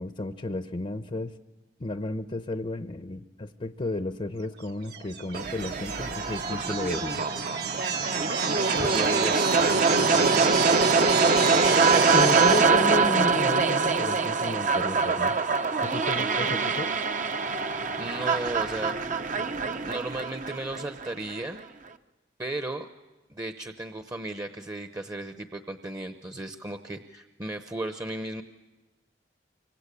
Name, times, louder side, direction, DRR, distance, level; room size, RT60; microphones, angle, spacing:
voice 1, 0.0-1.4 1.8-7.2 12.1-15.4 15.8-16.9, left 2 dB, 35° left, 9 dB, 0.8 m, -32 dB
sound 1, 4.9-12.6, right 6 dB, 65° right, 1.6 m, -30 dB
sound 2, 5.3-21.4, right 4 dB, 45° right, 0.9 m, -24 dB
voice 2, 8.7-10.6 16.1-16.5 18.0-18.9 19.7-21.6 22.4-22.9 23.3-28.4, right 2 dB, 20° right, 7 dB, 0.9 m, -35 dB
25.5 x 24.5 x 8.4 m, 1.1 s
head